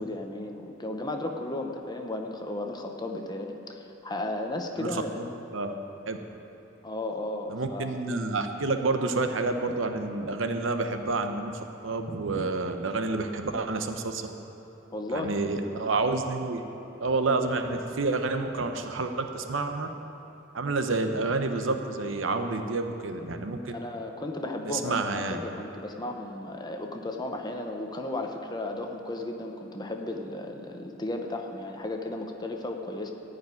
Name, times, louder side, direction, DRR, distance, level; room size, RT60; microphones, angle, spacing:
voice 1, 0.0-5.3 6.8-7.9 14.9-15.4 23.7-33.1, left 2 dB, 20° left, 3 dB, 0.9 m, -34 dB
voice 2, 4.8-5.7 6.1-6.2 7.5-11.5 11.8-14.3 15.1-16.6 17.0-19.9 20.5-23.7 24.7-25.4, right 3 dB, 75° right, 6 dB, 0.8 m, -29 dB
14.5 x 5.1 x 9.5 m, 3.0 s
head